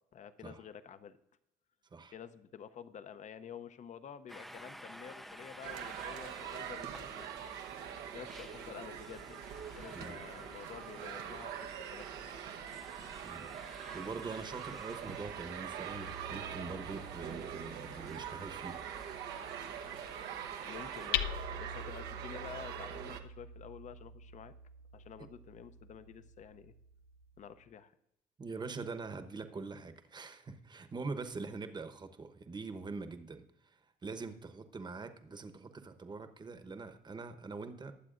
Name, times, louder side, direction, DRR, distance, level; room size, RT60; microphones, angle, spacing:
voice 1, 0.1-1.2 2.1-9.5 9.7-12.1 20.7-21.3 21.6-24.5 24.9-26.7 27.4-27.9, left 8 dB, 45° left, 13 dB, 0.7 m, -50 dB
sound 1, 4.3-21.1, equal, ahead, 0.5 m, -54 dB
sound 2, 5.6-23.2, right 9 dB, 85° right, 1.0 m, -43 dB
voice 2, 13.9-18.8 28.4-33.4 34.0-37.9, right 4 dB, 25° right, 9 dB, 1.0 m, -43 dB
Hammer, 15.9-27.6, left 7 dB, 85° left, 0.6 m, -45 dB
21.0 x 7.6 x 2.5 m, 0.85 s
cardioid pair, 110°, 17 cm